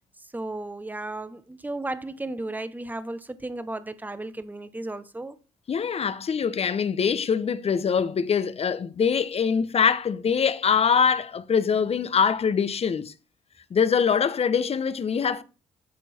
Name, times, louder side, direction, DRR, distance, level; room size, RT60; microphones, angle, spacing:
voice 1, 0.3-5.4, right 2 dB, 10° right, 1.0 m, -34 dB
voice 2, 5.7-13.1 13.7-15.4, left 6 dB, 45° left, 1.0 m, -23 dB
13.0 x 4.5 x 4.4 m
supercardioid pair, 60°, 14 cm